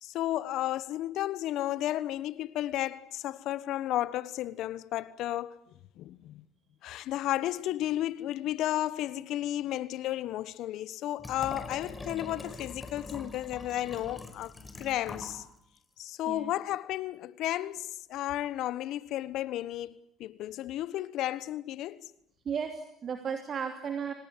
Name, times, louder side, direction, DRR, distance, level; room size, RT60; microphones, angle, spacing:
voice 1, 0.0-5.6 6.0-6.4 6.8-15.4 16.0-19.9 20.2-22.0, left 14 dB, 65° left, 1.2 m, -33 dB
Liquid, 11.2-15.4 15.8-15.9, left 2 dB, 20° left, 5.2 m, -43 dB
voice 2, 22.4-24.1, right 7 dB, 45° right, 2.9 m, -34 dB
26.0 x 19.0 x 9.9 m
hypercardioid pair, 70°, 0 cm